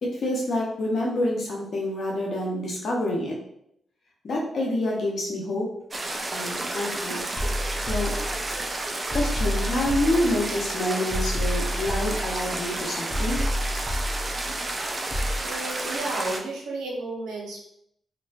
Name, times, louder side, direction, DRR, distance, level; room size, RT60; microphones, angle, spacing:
voice 1, 0.0-3.3 4.2-5.7 6.3-7.2 7.9-8.1 9.1-13.4, left 1 dB, 65° left, -3 dB, 0.8 m, -27 dB
sound 1, 5.9-16.4, right 2 dB, 35° right, 0.4 m, -31 dB
sound 2, 7.4-8.7 9.1-10.7 11.1-12.7 13.1-14.7 15.1-15.4, equal, 15° left, 0.7 m, -29 dB
voice 2, 15.4-17.6, right 2 dB, 85° right, -2 dB, 0.6 m, -32 dB
2.5 x 2.2 x 2.3 m, 0.73 s
supercardioid pair, 45°, 0 cm